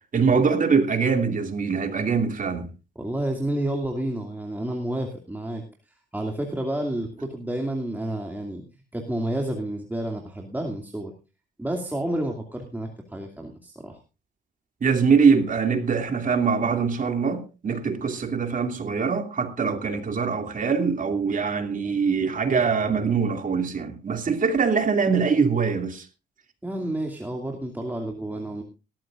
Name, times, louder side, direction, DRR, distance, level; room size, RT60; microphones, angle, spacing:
voice 1, 0.1-2.7 14.8-26.1, right 5 dB, 40° right, 2.7 m, -23 dB
voice 2, 3.0-8.6 8.9-11.1 11.6-14.0 26.6-28.6, right 1 dB, 10° right, 2.5 m, -30 dB
18.5 x 13.5 x 2.5 m
cardioid pair, 90°, 20 cm